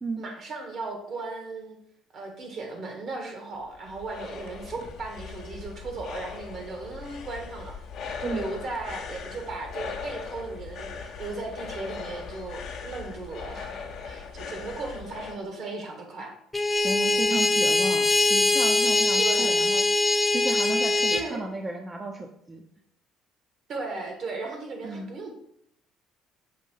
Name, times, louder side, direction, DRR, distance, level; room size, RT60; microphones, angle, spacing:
voice 1, 0.2-1.8 2.1-7.8 8.2-13.7 14.0-16.3 19.2-19.6 21.1-21.4 23.7-25.3, right 3 dB, 55° right, 3 dB, 1.6 m, -36 dB
sound 1, 3.5-15.4, left 5 dB, 65° left, 0.9 m, -39 dB
sound 2, 16.5-21.2, left 2 dB, 15° left, 0.7 m, -22 dB
voice 2, 16.8-19.9 20.3-22.6 24.8-25.1, right 3 dB, 25° right, 2 dB, 0.7 m, -34 dB
6.5 x 2.7 x 5.3 m, 0.74 s
supercardioid pair, 70°, 0 cm